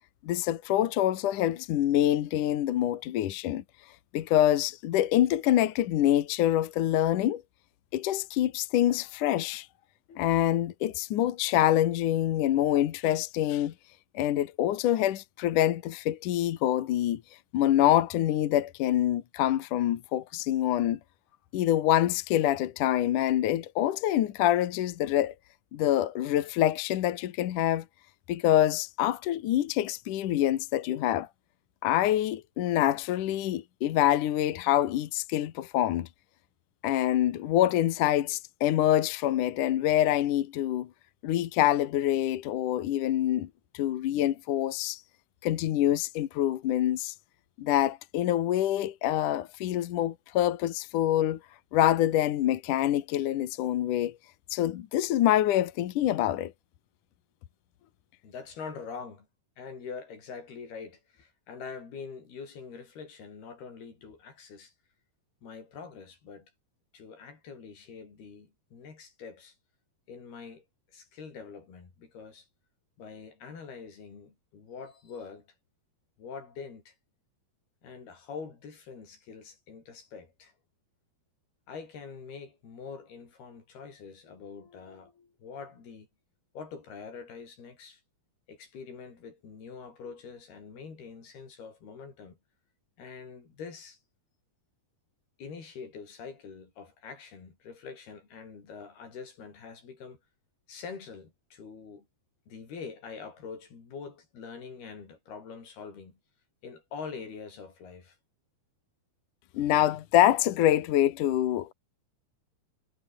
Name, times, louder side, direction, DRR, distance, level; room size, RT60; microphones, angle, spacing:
voice 1, 0.2-3.6 4.1-7.4 7.9-9.7 10.2-13.7 14.1-17.2 17.5-21.0 21.5-25.3 25.7-27.9 28.3-31.3 31.8-36.1 36.8-40.9 41.2-43.5 43.7-45.0 45.4-47.1 47.6-51.4 51.7-54.2 54.5-56.5 109.5-111.7, left 12 dB, 65° left, 2.5 m, -26 dB
voice 2, 10.1-10.4 58.2-59.3 59.6-64.7 65.4-66.5 66.9-69.6 70.1-70.6 70.9-72.5 73.0-75.5 76.2-77.0 77.8-80.5 81.7-86.1 86.5-88.0 88.5-92.4 93.0-94.0 95.4-100.2 100.7-102.1 102.5-106.2 106.6-108.2, left 5 dB, 85° left, 7.4 m, -44 dB
omnidirectional pair, 4.4 m